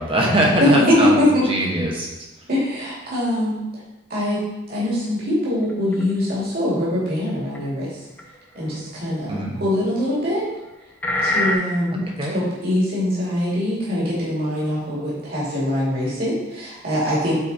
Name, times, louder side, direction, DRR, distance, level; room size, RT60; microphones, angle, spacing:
voice 1, 0.0-1.2 1.4-2.1 9.3-9.5 12.2-12.4, right 1 dB, 30° right, -1 dB, 1.2 m, -21 dB
voice 2, 0.6-1.4 2.5-3.5 4.1-4.4 4.7-7.9 8.5-10.4 11.2-12.0 12.3-17.4, left 1 dB, 50° right, -8 dB, 2.7 m, -22 dB
sound 1, 5.7-6.0 7.5-7.6 8.2-8.3 9.8-9.9 11.0-11.5, left 1 dB, 10° left, 0.7 m, -21 dB
8.3 x 4.2 x 4.3 m, 1.0 s
head